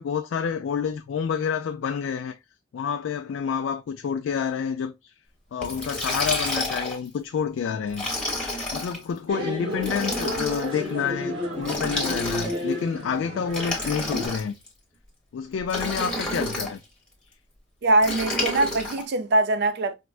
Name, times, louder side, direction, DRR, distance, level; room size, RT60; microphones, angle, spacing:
voice 1, 0.0-2.4 2.7-5.1 5.5-8.1 8.7-14.5 15.3-16.8, left 7 dB, 70° left, 0.3 m, -28 dB
Liquid, 5.6-7.1 7.9-9.0 9.8-10.7 11.6-12.7 13.5-14.7 15.7-16.7 18.0-19.0, left 1 dB, 5° left, 1.0 m, -29 dB
sound 1, 9.3-14.3, left 1 dB, 90° right, 1.7 m, -32 dB
voice 2, 17.8-19.9, right 2 dB, 60° right, 0.5 m, -22 dB
4.4 x 2.1 x 2.3 m
head